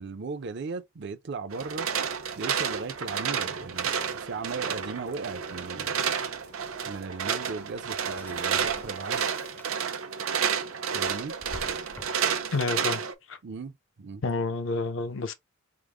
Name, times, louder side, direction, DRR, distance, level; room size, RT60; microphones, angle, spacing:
voice 1, 0.0-1.9 2.4-6.1 6.9-9.3 10.9-11.4 13.4-14.2, right 4 dB, 55° right, 0.5 m, -37 dB
sound 1, 1.5-8.9, equal, 85° left, 2.8 m, -54 dB
sound 2, 1.5-13.1, right 7 dB, 85° right, 0.7 m, -30 dB
Drawer open or close, 7.6-10.0 10.4-12.5, left 1 dB, 10° left, 0.4 m, -47 dB
voice 2, 12.5-13.0 13.3-13.4 14.2-15.3, left 3 dB, 65° left, 0.6 m, -29 dB
4.9 x 2.0 x 3.5 m
head